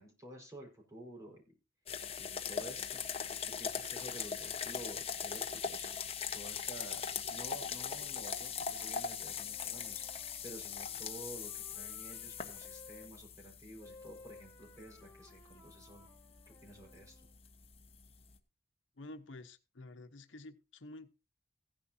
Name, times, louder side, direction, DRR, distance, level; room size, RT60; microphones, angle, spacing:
voice 1, 0.0-1.5 2.2-3.0 3.6-5.9 6.3-7.0 7.3-10.0 10.4-16.1 16.6-17.2, right 1 dB, 15° right, 0 dB, 4.8 m, -51 dB
sound 1, 1.9-18.3, left 7 dB, 30° left, 1.1 m, -41 dB
Wind instrument woodwind instrument, 9.2-13.1 13.8-17.3, left 3 dB, 15° left, 1.9 m, -59 dB
voice 2, 19.0-21.1, left 2 dB, 85° left, 8 dB, 1.0 m, -50 dB
16.0 x 10.5 x 2.8 m, 0.29 s
head